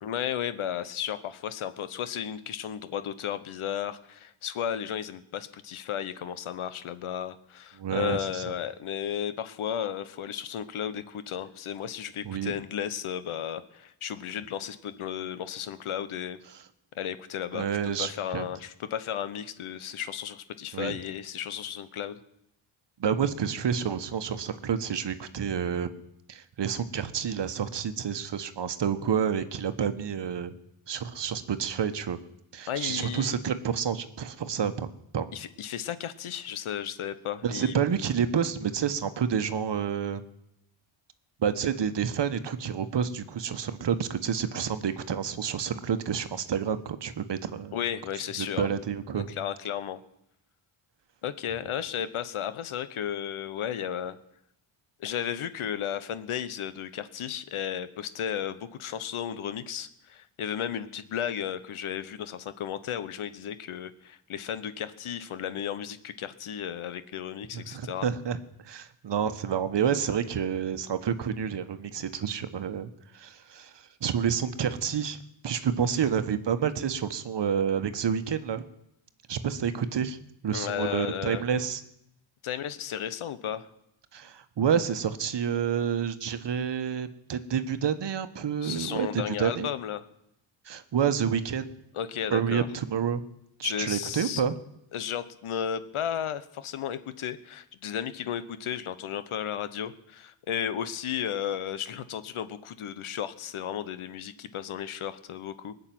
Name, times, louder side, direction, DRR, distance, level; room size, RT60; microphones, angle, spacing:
voice 1, 0.0-16.4 16.9-17.7 18.0-22.2 32.7-33.3 35.3-37.7 47.7-48.7 49.1-50.0 51.2-54.2 55.0-68.1 80.5-81.4 82.4-83.7 88.6-90.0 91.9-92.7 93.6-94.4 94.9-105.7, left 9 dB, 75° left, 13 dB, 1.1 m, -34 dB
voice 2, 7.8-8.4 12.2-12.5 17.5-18.5 20.7-21.0 23.0-25.9 26.3-30.5 30.9-32.2 32.5-35.3 37.4-40.2 41.4-47.8 48.4-49.3 67.5-68.4 68.6-75.2 75.4-78.6 79.3-80.2 80.4-81.8 84.1-89.7 90.6-91.7 92.3-93.2 93.6-94.5, right 7 dB, 55° right, 11 dB, 1.2 m, -29 dB
20.0 x 6.7 x 9.2 m, 0.79 s
cardioid pair, 70°, 49 cm